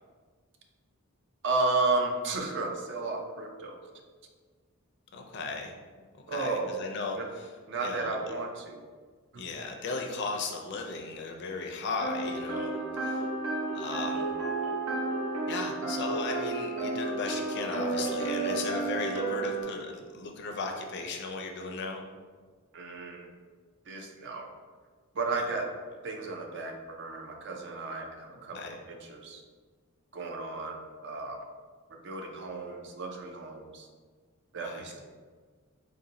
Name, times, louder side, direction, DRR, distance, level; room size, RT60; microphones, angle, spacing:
voice 1, 1.4-3.8 6.3-6.8 7.2-7.3 7.7-8.8 9.3-9.5 22.7-23.3 23.9-24.5 25.1-25.7 26.0-29.4 30.1-31.4 32.0-33.9 34.5-35.0, right 3 dB, 55° right, 2 dB, 0.5 m, -33 dB
voice 2, 5.1-5.7 6.3-7.2 7.8-8.3 9.4-13.3 13.7-14.3 15.5-22.0 25.3-25.5 28.5-28.8 34.6-34.9, left 3 dB, 55° left, 2 dB, 0.5 m, -36 dB
sound 1, 12.0-19.6, right 3 dB, 80° right, 1.0 m, -32 dB
4.1 x 2.2 x 3.8 m, 1.5 s
head